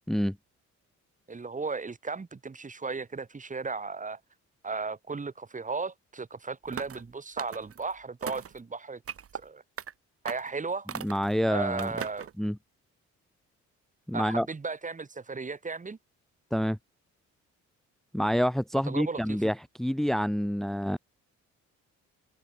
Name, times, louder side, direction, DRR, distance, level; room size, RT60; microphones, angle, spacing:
voice 1, 1.3-4.2 4.6-9.0 9.3-9.6 10.2-10.9 11.5-12.3 14.1-16.0 18.9-19.4, right 4 dB, 25° right, 2.2 m, -35 dB
sound 1, 6.7-7.0 7.4-7.8 8.2-8.6 9.1-9.4 9.8-9.9 10.2-10.5 10.9-11.3 11.8-12.3, right 8 dB, 50° right, 2.0 m, -38 dB
voice 2, 11.0-11.9 12.4-12.6 14.1-14.5 16.5-16.8 18.1-21.0, equal, ahead, 1.2 m, -27 dB
cardioid pair, 90°, 30 cm